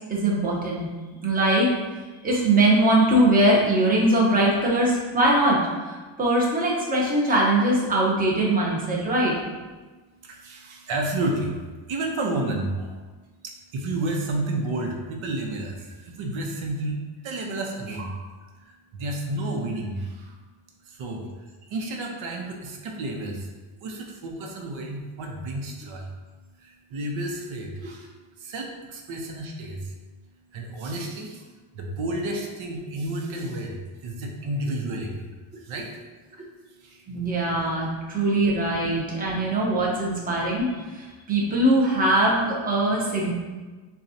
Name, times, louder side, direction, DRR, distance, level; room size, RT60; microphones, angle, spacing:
voice 1, 0.1-0.9 1.2-1.7 2.2-9.4 37.1-43.3, right 1 dB, 20° right, -4 dB, 0.8 m, -21 dB
voice 2, 10.2-11.6 11.9-13.0 13.4-18.3 18.6-20.4 20.8-23.5 23.8-26.1 26.6-29.9 30.5-31.4 31.7-35.3 35.6-36.0 36.7-37.1 38.1-38.2, right 2 dB, 85° right, 1 dB, 0.8 m, -31 dB
6.9 x 2.3 x 2.7 m, 1.3 s
wide cardioid pair, 160°, 46 cm